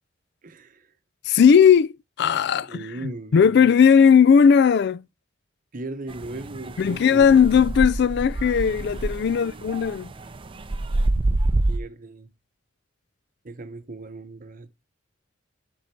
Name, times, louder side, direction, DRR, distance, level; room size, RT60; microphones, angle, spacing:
voice 1, 0.4-0.9 2.6-3.7 5.7-7.5 9.3-9.9 11.7-12.3 13.4-14.7, right 2 dB, 45° right, 0.9 m, -38 dB
voice 2, 1.3-1.9 2.2-2.8 3.3-5.0 6.8-10.1, left 7 dB, 60° left, 0.4 m, -17 dB
sound 1, 6.1-11.8, right 2 dB, 30° right, 0.5 m, -27 dB
11.5 x 3.9 x 4.5 m
head